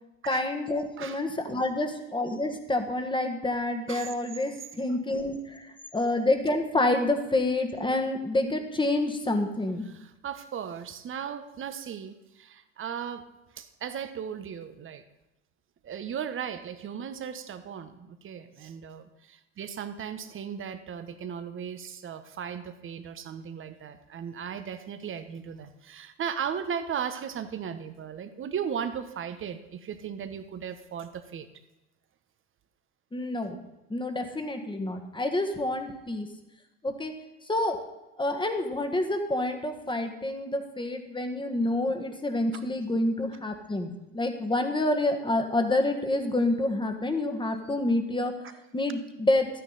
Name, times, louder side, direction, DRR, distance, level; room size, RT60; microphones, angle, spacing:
voice 1, 0.2-9.8 33.1-33.6 33.9-36.3 36.8-37.1 37.5-37.8 38.2-48.3 48.7-49.5, left 2 dB, 15° left, 6 dB, 1.7 m, -28 dB
voice 2, 9.9-13.3 13.5-15.0 15.8-31.5, right 8 dB, 35° right, 10 dB, 1.1 m, -36 dB
13.0 x 9.4 x 4.1 m, 0.97 s
hypercardioid pair, 80°, 37 cm